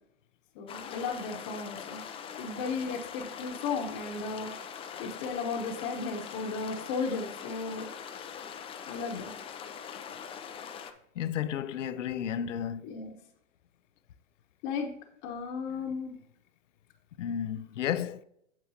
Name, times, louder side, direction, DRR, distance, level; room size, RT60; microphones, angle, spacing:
voice 1, 0.6-2.0 2.4-7.9 8.9-9.3 12.8-13.2 14.6-15.0 15.2-16.2, left 4 dB, 45° left, 1.1 m, -35 dB
sound 1, 0.7-10.9, left 7 dB, 15° left, 0.5 m, -42 dB
voice 2, 11.2-12.8 17.2-18.2, left 9 dB, 85° left, 0.5 m, -32 dB
8.7 x 7.1 x 2.8 m
hypercardioid pair, 115°, 36 cm